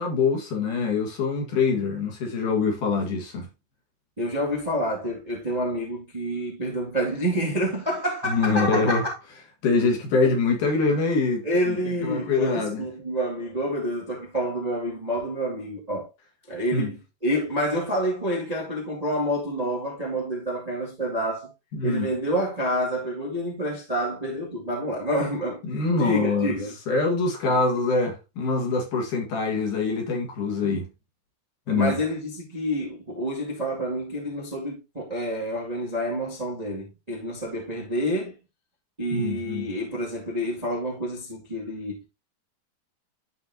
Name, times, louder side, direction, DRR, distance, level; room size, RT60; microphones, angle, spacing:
voice 1, 0.0-3.5 8.2-9.0 9.6-12.8 16.7-16.9 21.7-22.1 25.6-26.5 26.9-30.9 31.7-31.9 39.1-39.6, left 4 dB, 55° left, 2.9 m, -24 dB
voice 2, 4.2-9.2 10.2-10.3 11.4-16.1 16.5-21.5 21.8-25.6 25.9-26.7 27.4-27.6 31.7-38.3 39.0-42.0, equal, 80° right, 0.3 m, -28 dB
12.0 x 4.2 x 2.8 m
omnidirectional pair, 5.1 m